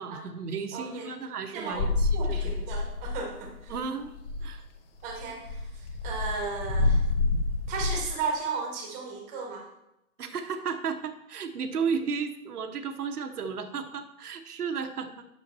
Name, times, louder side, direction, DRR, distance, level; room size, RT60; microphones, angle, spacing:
voice 1, 0.0-2.5 3.7-4.1 4.4-4.6 10.2-15.3, right 6 dB, 75° right, 7 dB, 1.2 m, -34 dB
voice 2, 0.7-1.1 1.5-1.9 2.1-3.7 5.0-7.0 7.7-9.7, right 4 dB, 15° right, 2 dB, 1.3 m, -35 dB
sound 1, 1.7-3.4 3.7-3.8 4.1-4.6 5.1-8.1, left 3 dB, 40° left, 1.1 m, -28 dB
9.3 x 6.7 x 4.2 m, 0.86 s
hypercardioid pair, 160°, 46 cm